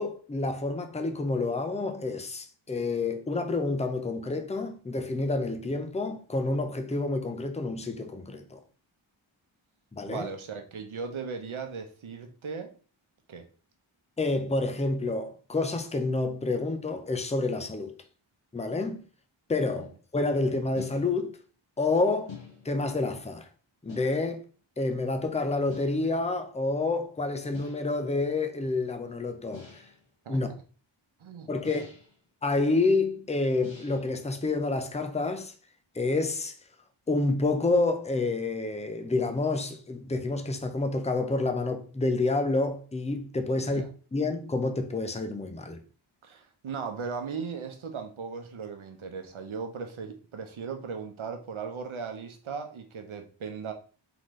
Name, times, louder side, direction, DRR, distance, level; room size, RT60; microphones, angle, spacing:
voice 1, 0.0-8.6 9.9-10.3 14.2-18.0 18.5-19.0 19.5-21.4 21.8-22.3 22.6-23.5 23.8-24.4 24.8-29.8 30.3-30.5 31.5-31.9 32.4-35.5 35.9-36.5 37.1-43.8 44.1-45.8, left 3 dB, 15° left, 0.5 m, -28 dB
voice 2, 10.1-12.7 13.3-13.5 19.8-19.9 30.2-30.6 31.2-31.5 31.8-31.9 43.5-43.9 46.2-53.7, right 5 dB, 75° right, 0.9 m, -37 dB
sound 1, 20.8-21.4 22.3-22.9 23.9-24.5 25.7-26.2 27.5-28.0 29.5-30.1 31.6-32.2 33.6-34.2, left 5 dB, 65° left, 1.6 m, -47 dB
3.9 x 3.8 x 3.1 m
wide cardioid pair, 100°, 49 cm